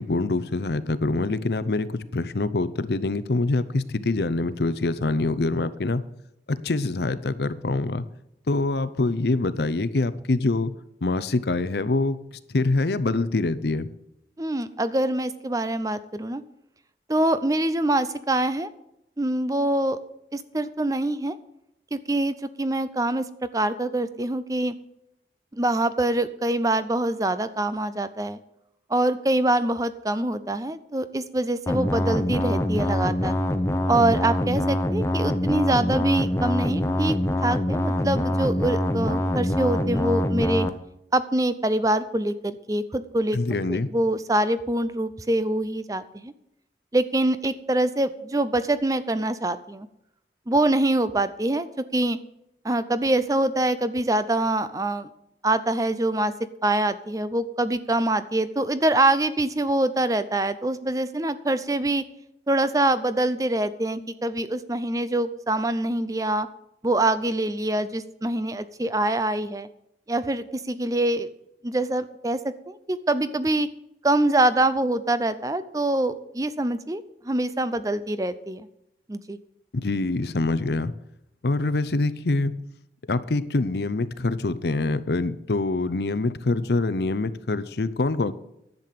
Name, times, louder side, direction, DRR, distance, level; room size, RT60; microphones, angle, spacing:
voice 1, 0.0-6.0 6.5-8.1 8.5-10.7 11.0-12.2 12.5-13.9 43.3-43.9 79.7-80.9 81.4-82.5 83.1-88.3, left 2 dB, 70° left, 15 dB, 0.6 m, -25 dB
voice 2, 14.4-16.4 17.1-18.7 19.2-20.0 20.3-21.4 21.9-23.3 23.5-24.7 25.5-28.4 28.9-33.4 33.9-37.2 37.4-40.7 41.1-46.3 46.9-49.9 50.5-52.2 52.6-55.1 55.4-56.3 56.6-62.0 62.5-66.5 66.8-69.7 70.1-71.3 71.6-73.7 74.0-78.7 79.1-79.4, right 1 dB, 20° right, 13 dB, 0.5 m, -24 dB
sound 1, 31.7-40.7, left 1 dB, 15° left, 0.7 m, -24 dB
11.0 x 7.6 x 6.7 m, 0.82 s
head